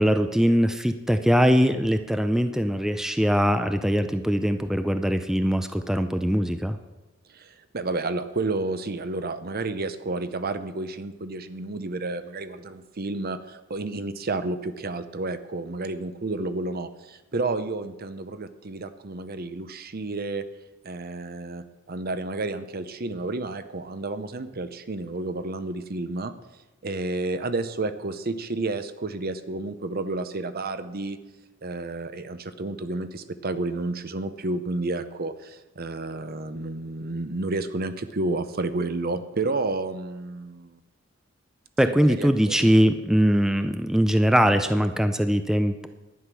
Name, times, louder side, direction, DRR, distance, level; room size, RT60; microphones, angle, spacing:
voice 1, 0.0-6.8 41.8-45.9, equal, 5° right, 8 dB, 0.5 m, -21 dB
voice 2, 7.3-20.4 20.8-26.3 26.8-31.2 31.6-40.8 41.8-42.7, right 2 dB, 50° right, 11 dB, 0.8 m, -31 dB
11.0 x 10.0 x 6.2 m, 1.1 s
head